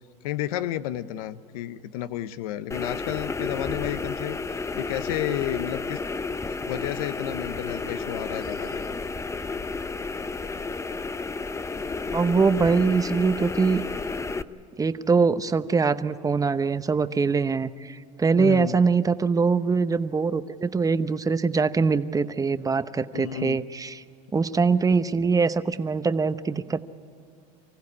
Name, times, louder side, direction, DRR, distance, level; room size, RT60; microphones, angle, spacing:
voice 1, 0.2-4.4 4.7-6.0 6.7-9.0 18.3-18.8 23.1-23.6, left 13 dB, 85° left, 14 dB, 0.8 m, -31 dB
sound 1, 2.7-14.4, left 4 dB, 15° left, 0.7 m, -32 dB
voice 2, 12.1-13.8 14.8-24.0 24.3-26.8, right 4 dB, 20° right, 12 dB, 0.9 m, -23 dB
25.5 x 15.5 x 9.7 m, 2.5 s
supercardioid pair, 90°, 18 cm